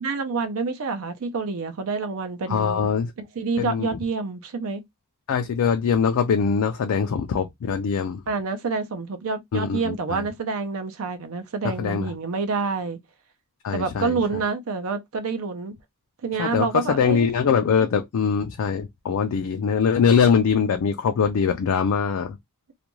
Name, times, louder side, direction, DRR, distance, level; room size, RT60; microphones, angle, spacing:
voice 1, 0.0-2.9 3.2-4.8 8.3-13.0 13.7-15.7 16.2-17.3, right 4 dB, 65° right, 0.5 m, -28 dB
voice 2, 2.5-3.1 3.6-3.9 5.3-8.2 9.5-10.2 11.6-12.1 13.6-14.2 16.4-22.4, left 6 dB, 75° left, 0.4 m, -22 dB
2.4 x 2.2 x 3.0 m
head